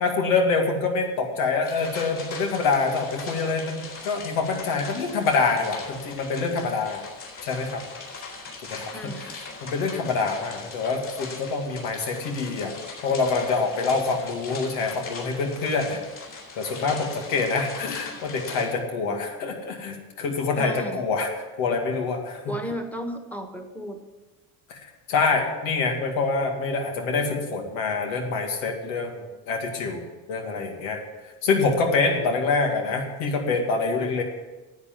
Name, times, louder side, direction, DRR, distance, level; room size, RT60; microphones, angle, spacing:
voice 1, 0.0-7.0 7.4-7.8 8.7-9.1 9.6-12.7 13.0-16.0 16.6-21.3 21.6-22.4 24.7-24.8 25.1-30.0 30.3-31.0 31.4-34.2, left 4 dB, 85° left, 2 dB, 2.3 m, -25 dB
sound 1, 1.6-18.7, left 4 dB, 45° left, 4.1 m, -40 dB
voice 2, 8.9-9.4 20.6-21.0 22.5-24.0, equal, 5° left, 5 dB, 1.5 m, -34 dB
10.5 x 8.5 x 7.4 m, 1.2 s
supercardioid pair, 100°, 45 cm